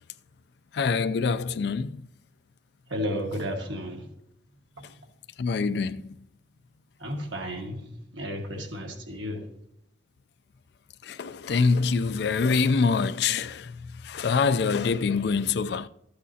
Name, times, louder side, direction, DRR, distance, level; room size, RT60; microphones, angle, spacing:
voice 1, 0.7-2.0 5.4-6.2 11.0-15.9, left 5 dB, 60° left, 0.4 m, -25 dB
voice 2, 2.9-4.1 7.0-9.4, equal, 85° right, 1.6 m, -33 dB
12.5 x 8.5 x 2.8 m
head